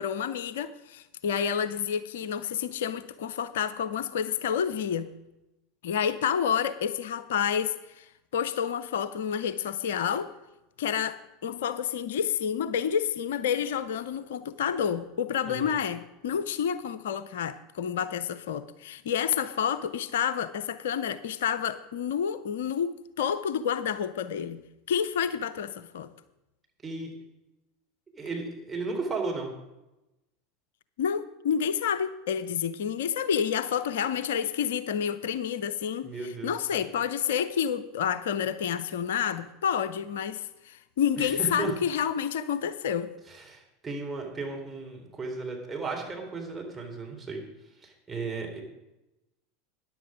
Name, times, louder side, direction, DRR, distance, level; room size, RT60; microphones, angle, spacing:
voice 1, 0.0-5.1 5.8-10.3 10.8-24.6 24.9-26.1 31.0-43.1, left 8 dB, 65° left, 14 dB, 0.6 m, -29 dB
voice 2, 28.1-29.5 36.0-36.8 41.2-41.7 43.3-47.4 47.8-48.6, right 4 dB, 20° right, 1 dB, 3.8 m, -35 dB
14.0 x 10.5 x 5.1 m, 0.96 s
figure-of-eight pair, 80°, 0 cm